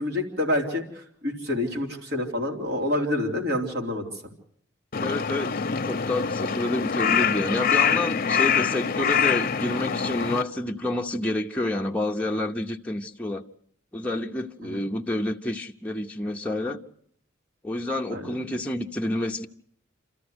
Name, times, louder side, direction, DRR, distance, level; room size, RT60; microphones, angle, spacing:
voice 1, 0.0-4.1 14.6-14.8 18.1-18.3, left 1 dB, 55° right, 3.7 m, -28 dB
Crow, 4.9-10.4, left 7 dB, 50° left, 0.8 m, -25 dB
voice 2, 5.0-13.4 13.9-16.8 17.6-19.5, left 1 dB, 5° left, 0.8 m, -29 dB
27.5 x 14.0 x 7.9 m
head